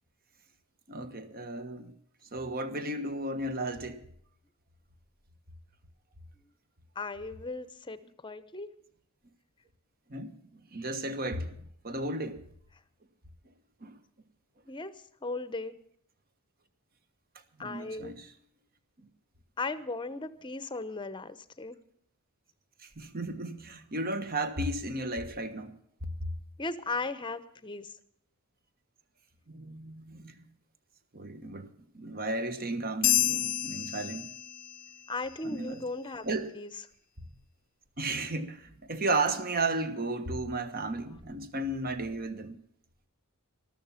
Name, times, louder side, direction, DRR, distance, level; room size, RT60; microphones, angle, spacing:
voice 1, 0.9-1.9 2.3-4.0 10.1-12.4 13.8-13.9 17.6-18.3 19.0-19.1 22.8-25.7 26.0-26.3 29.5-30.4 31.1-34.3 35.4-35.8 36.2-36.5 38.0-42.6, right 2 dB, 40° right, 1.2 m, -34 dB
voice 2, 7.0-8.7 14.7-14.9 15.2-15.8 17.6-18.1 19.6-21.8 26.6-28.0 35.1-36.2 36.5-36.7, left 3 dB, 20° left, 0.8 m, -37 dB
sound 1, 33.0-34.9, left 12 dB, 40° left, 0.5 m, -29 dB
14.5 x 13.0 x 5.7 m
head